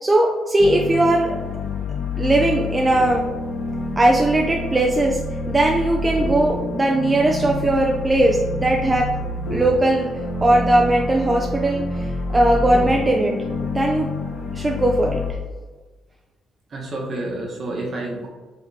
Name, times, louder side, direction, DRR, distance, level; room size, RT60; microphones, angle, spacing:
voice 1, 0.0-1.4 2.2-3.3 4.0-5.2 5.5-9.1 9.5-10.1 10.4-13.4 13.7-14.1 14.5-15.2, right 1 dB, 20° right, 0 dB, 0.4 m, -19 dB
sound 1, 0.6-15.3, left 2 dB, 80° left, 0.8 m, -28 dB
voice 2, 16.7-18.3, right 2 dB, 50° right, -2 dB, 1.1 m, -29 dB
5.0 x 3.0 x 2.7 m, 1.3 s
cardioid pair, 90°, 0 cm